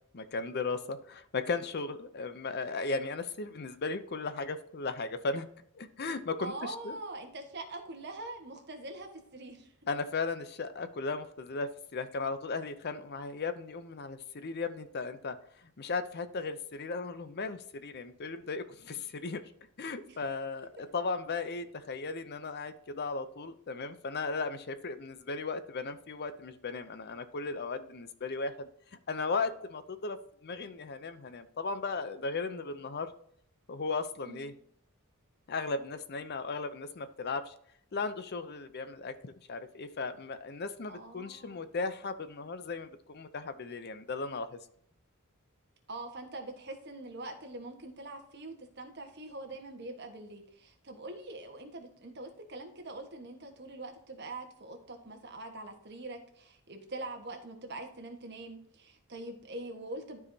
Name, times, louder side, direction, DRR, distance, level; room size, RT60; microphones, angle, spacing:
voice 1, 0.1-5.5 5.7-7.0 9.9-15.4 15.8-19.4 19.8-28.7 29.1-33.1 33.7-34.5 35.5-37.5 37.9-44.6, left 4 dB, 45° left, 11 dB, 0.6 m, -36 dB
voice 2, 6.4-9.7 20.0-20.2 34.2-34.5 40.9-41.6 45.9-60.2, right 2 dB, 50° right, 4 dB, 1.4 m, -43 dB
12.5 x 4.8 x 2.8 m, 0.67 s
head